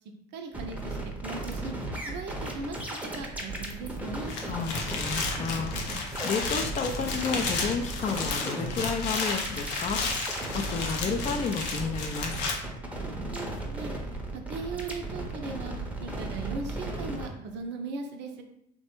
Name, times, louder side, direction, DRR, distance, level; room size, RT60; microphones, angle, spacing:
voice 1, 0.3-1.0 1.2-1.7 2.1-4.3 13.3-13.9 14.3-18.4, right 3 dB, 55° right, 5 dB, 0.5 m, -38 dB
sound 1, 0.5-17.3, right 2 dB, 5° right, 0.6 m, -36 dB
sound 2, 4.3-12.5, left 4 dB, 85° left, 0.6 m, -33 dB
voice 2, 4.5-12.3, left 5 dB, 35° left, 5 dB, 0.3 m, -32 dB
3.1 x 2.2 x 3.0 m, 0.76 s
hypercardioid pair, 70°, 21 cm